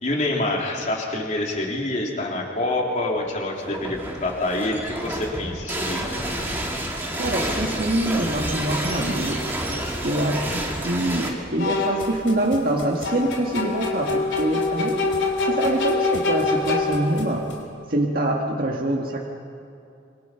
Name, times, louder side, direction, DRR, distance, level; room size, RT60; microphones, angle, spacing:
voice 1, 0.0-6.2, left 1 dB, 40° left, -1 dB, 3.5 m, -26 dB
sound 1, 3.5-11.3, right 1 dB, 10° right, 2.6 m, -29 dB
voice 2, 7.2-9.4 10.0-15.0 15.4-17.5 17.9-19.2, right 1 dB, 50° right, -1 dB, 1.8 m, -25 dB
sound 2, 9.5-9.6 11.6-12.2 13.0-17.3, left 3 dB, 70° left, 3.3 m, -25 dB
sound 3, 11.1-17.6, left 1 dB, 85° left, 5.3 m, -43 dB
26.5 x 25.5 x 5.7 m, 2.6 s
head